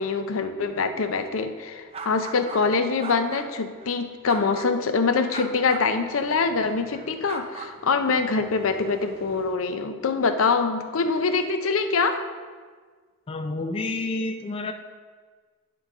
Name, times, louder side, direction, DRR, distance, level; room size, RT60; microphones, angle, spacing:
voice 1, 0.0-12.2, left 4 dB, 85° left, 8 dB, 0.6 m, -24 dB
sound 1, 1.9-2.6 3.0-3.9 4.3-4.9 5.3-9.5, right 3 dB, 30° right, 0.6 m, -41 dB
voice 2, 13.3-14.7, left 2 dB, 25° left, 7 dB, 0.3 m, -29 dB
9.9 x 3.9 x 4.9 m, 1.5 s
head